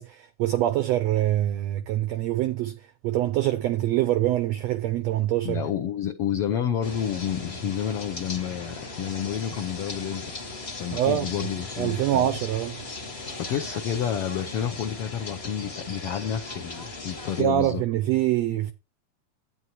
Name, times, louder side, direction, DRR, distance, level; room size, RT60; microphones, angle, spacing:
voice 1, 0.0-5.6 10.9-11.3 11.8-12.8 17.4-18.7, right 13 dB, 85° right, 1.5 m, -25 dB
voice 2, 5.4-10.3 10.8-12.3 13.4-17.8, left 9 dB, 80° left, 1.3 m, -30 dB
sound 1, 6.8-17.4, left 2 dB, 60° left, 0.6 m, -38 dB
11.0 x 9.1 x 2.8 m
omnidirectional pair, 3.7 m